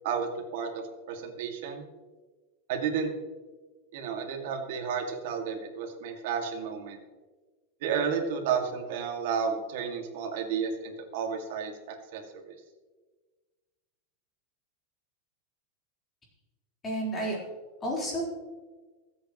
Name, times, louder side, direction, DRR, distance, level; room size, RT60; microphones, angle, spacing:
voice 1, 0.0-1.8 2.7-3.1 3.9-7.0 7.8-12.5, right 6 dB, 60° right, 3 dB, 2.2 m, -32 dB
voice 2, 16.8-17.4 17.8-18.2, right 1 dB, 15° left, -4 dB, 4.1 m, -30 dB
24.5 x 8.4 x 3.1 m, 1.3 s
supercardioid pair, 165°, 0 cm